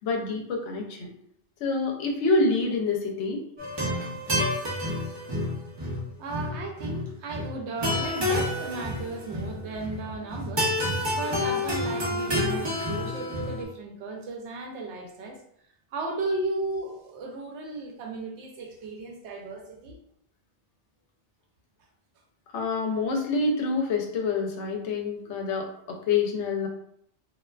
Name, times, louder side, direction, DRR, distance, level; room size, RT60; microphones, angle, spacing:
voice 1, 0.0-1.1 1.6-3.4 22.5-26.7, left 3 dB, 80° left, 2 dB, 0.9 m, -27 dB
sound 1, 3.6-13.6, left 1 dB, 40° right, 0.4 m, -29 dB
voice 2, 6.2-15.4 15.9-20.0, right 2 dB, 80° right, 2 dB, 0.9 m, -35 dB
2.4 x 2.3 x 2.2 m, 0.68 s
omnidirectional pair, 1.2 m